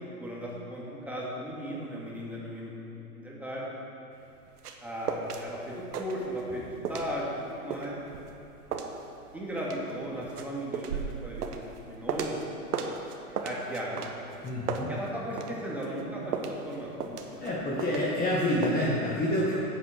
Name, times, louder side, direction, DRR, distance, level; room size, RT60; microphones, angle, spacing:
voice 1, 0.0-3.7 4.8-7.3 7.6-7.9 9.3-11.4 11.9-12.6 13.3-14.1 14.9-16.3 16.6-17.6, equal, 5° right, -6 dB, 2.3 m, -36 dB
sound 1, 4.2-5.5 5.7-6.6 6.9-12.5 12.7-15.5 15.8-18.3 18.6-18.8, right 6 dB, 85° right, 1.2 m, -35 dB
voice 2, 14.4-14.9 17.4-19.5, left 1 dB, 20° left, -6 dB, 1.6 m, -27 dB
10.5 x 8.1 x 6.4 m, 2.8 s
hypercardioid pair, 120°, 45 cm